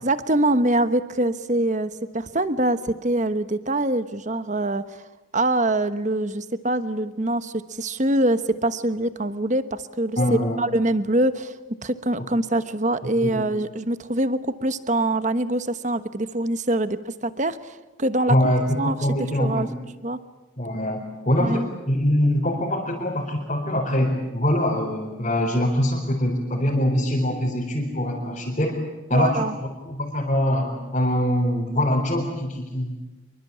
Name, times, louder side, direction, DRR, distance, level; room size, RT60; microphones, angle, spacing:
voice 1, 0.0-5.1 5.3-10.2 10.6-11.5 11.8-18.4 18.8-19.0 19.4-19.7 20.0-20.2 21.4-21.7 29.1-29.6, right 1 dB, 35° right, 12 dB, 1.2 m, -24 dB
voice 2, 10.2-10.6 13.2-13.4 18.3-19.7 20.6-28.7 29.1-32.9, equal, 35° left, -3 dB, 4.6 m, -23 dB
27.0 x 23.5 x 8.7 m, 1.2 s
head